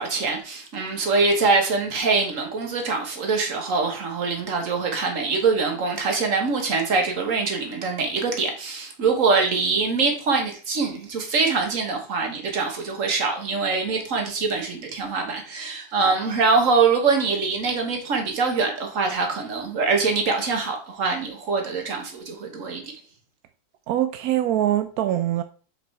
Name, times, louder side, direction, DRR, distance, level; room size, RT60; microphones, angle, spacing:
voice 1, 0.0-22.9, right 4 dB, 45° right, 1.6 m, -24 dB
voice 2, 23.9-25.4, right 12 dB, 75° right, 0.8 m, -23 dB
5.6 x 5.3 x 4.4 m
omnidirectional pair, 2.1 m